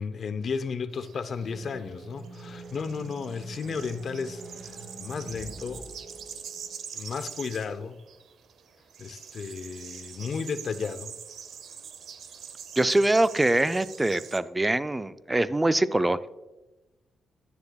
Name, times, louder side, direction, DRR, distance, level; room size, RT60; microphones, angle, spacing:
voice 1, 0.0-5.9 6.9-8.0 9.0-11.2, left 5 dB, 55° left, 0.5 m, -34 dB
sound 1, 0.9-14.4, right 7 dB, 75° right, 0.7 m, -44 dB
sound 2, 1.3-7.0, right 2 dB, 40° right, 2.9 m, -45 dB
voice 2, 12.8-16.2, right 2 dB, 15° right, 0.3 m, -23 dB
9.5 x 9.3 x 2.3 m
cardioid pair, 105°, 0 cm